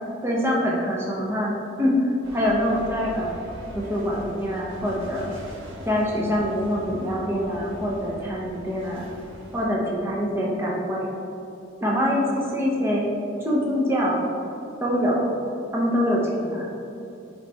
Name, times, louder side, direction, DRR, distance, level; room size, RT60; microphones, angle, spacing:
voice 1, 0.2-3.3 3.7-5.3 5.8-9.1 9.5-11.1 11.8-12.2 12.5-13.0 13.4-14.3 14.8-15.3 15.7-16.7, equal, 10° right, -4 dB, 0.8 m, -24 dB
sound 1, 2.2-9.6, equal, 75° right, 1.2 m, -41 dB
9.3 x 3.2 x 3.4 m, 2.8 s
head